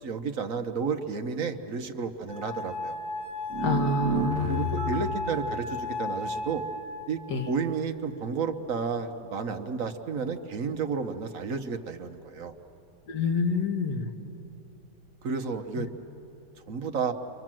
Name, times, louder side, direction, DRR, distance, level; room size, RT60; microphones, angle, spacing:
voice 1, 0.0-3.0 4.5-6.6 7.1-12.6 15.2-15.9 16.7-17.1, right 5 dB, 55° right, 6 dB, 1.3 m, -32 dB
sound 1, 2.3-9.2 10.1-10.6, left 2 dB, 5° right, 2.6 m, -36 dB
sound 2, 3.5-5.3, right 4 dB, 85° right, 1.5 m, -30 dB
voice 2, 3.6-4.7 7.3-7.5 13.1-14.1 15.8-15.9, left 4 dB, 85° left, 4 dB, 2.1 m, -28 dB
30.0 x 25.0 x 7.6 m, 2.9 s
omnidirectional pair, 1.8 m